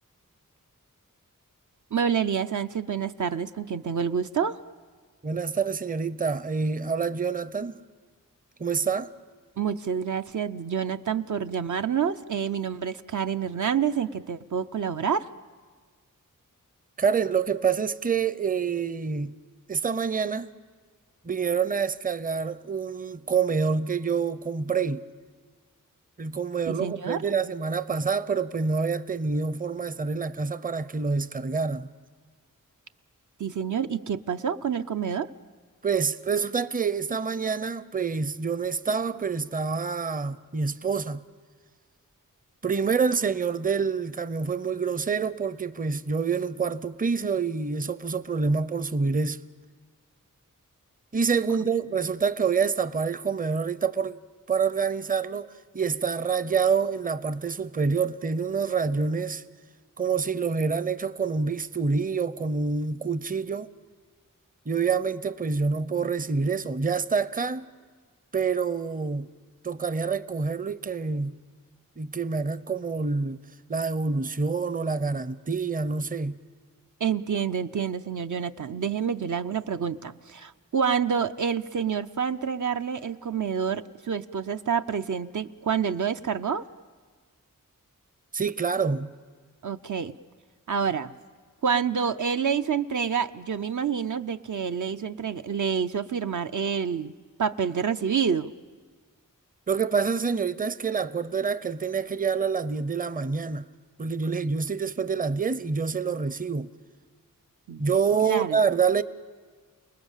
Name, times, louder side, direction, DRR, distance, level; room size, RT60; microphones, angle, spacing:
voice 1, 1.9-4.6 9.6-15.3 26.7-27.2 33.4-35.3 77.0-86.6 89.6-90.1 90.7-91.1 91.6-97.1 97.4-98.5 107.7-107.8 108.2-108.6, right 7 dB, 60° right, 0.6 m, -28 dB
voice 2, 5.2-7.8 8.6-9.1 17.0-19.4 19.7-20.5 21.2-25.0 26.2-31.9 35.8-41.2 42.6-49.4 51.1-54.2 54.5-59.4 60.0-63.7 64.7-67.7 68.3-69.3 69.6-71.3 72.0-73.4 73.7-76.4 88.3-89.1 99.7-103.6 104.0-106.7 107.8-109.0, right 5 dB, 25° right, 0.6 m, -27 dB
29.0 x 20.0 x 7.4 m
wide cardioid pair, 70°, 33 cm